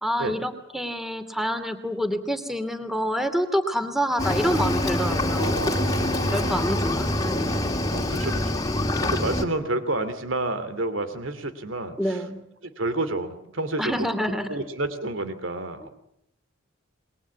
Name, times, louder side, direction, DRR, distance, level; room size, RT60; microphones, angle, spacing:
voice 1, 0.0-5.5 6.3-7.7 12.0-12.4 13.8-14.5, equal, ahead, 9 dB, 2.6 m, -27 dB
Cricket / Waves surf, 4.2-9.4, left 1 dB, 20° left, 2.4 m, -25 dB
voice 2, 5.4-6.7 7.9-8.6 9.0-12.2 12.6-14.1 14.5-15.9, right 2 dB, 85° right, 11 dB, 2.8 m, -30 dB
28.0 x 22.0 x 8.5 m, 0.77 s
head